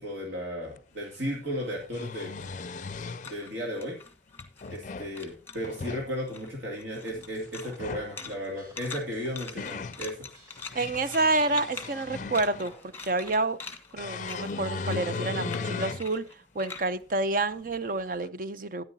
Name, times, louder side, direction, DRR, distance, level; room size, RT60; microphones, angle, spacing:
voice 1, 0.0-2.3 3.3-4.0 4.7-10.3, equal, 75° right, 2.6 m, -35 dB
sound 1, 0.8-0.9 1.7-3.4 4.4-5.1 5.6-6.1 7.7-8.1 9.1-10.0 10.6-12.8 14.0-16.1 16.6-16.7 18.2-18.3, left 4 dB, 45° left, 0.4 m, -36 dB
sound 2, 0.9-4.9 5.1-5.9 6.2-18.1, left 5 dB, 10° left, 1.4 m, -45 dB
sound 3, 7.0-13.0, right 1 dB, 20° right, 3.4 m, -54 dB
voice 2, 10.7-12.7 13.0-13.6 13.9-16.2 16.5-18.8, right 2 dB, 50° right, 0.6 m, -28 dB
13.0 x 10.0 x 2.8 m
head